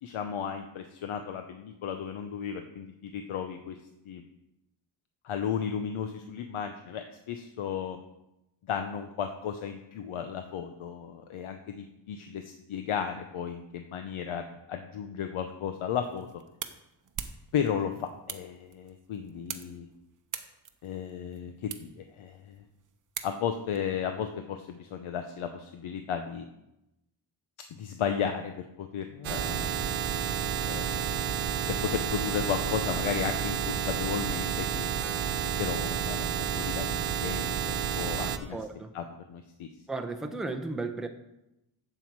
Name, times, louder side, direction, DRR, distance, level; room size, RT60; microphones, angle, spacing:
voice 1, 0.0-3.8 4.1-4.2 5.2-8.0 8.6-16.3 17.5-19.9 20.8-22.6 23.2-26.4 27.7-29.7 30.7-31.0 31.7-34.9 35.6-38.6 38.9-39.7, left 8 dB, 90° left, 6 dB, 0.9 m, -34 dB
sound 1, 15.9-23.8, right 7 dB, 40° right, 0.7 m, -44 dB
sound 2, 29.2-38.4, right 8 dB, 90° right, 1.0 m, -30 dB
voice 2, 38.5-38.9 39.9-41.1, right 3 dB, ahead, 4 dB, 0.6 m, -34 dB
11.5 x 8.0 x 4.7 m, 0.90 s
wide cardioid pair, 175°, 48 cm